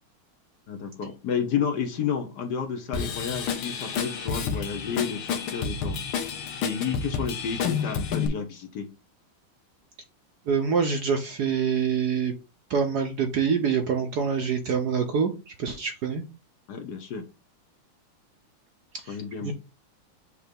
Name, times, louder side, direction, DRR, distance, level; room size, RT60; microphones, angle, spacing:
voice 1, 0.7-6.0 6.6-8.9 16.7-17.2 19.1-19.5, left 7 dB, 60° left, 4 dB, 1.2 m, -31 dB
Drum kit / Drum, 2.9-8.3, left 6 dB, 75° left, 1.7 m, -30 dB
voice 2, 10.5-12.3 12.7-16.2 19.0-19.5, right 6 dB, 65° right, 5 dB, 1.0 m, -26 dB
6.6 x 3.1 x 5.1 m, 0.30 s
omnidirectional pair, 2.3 m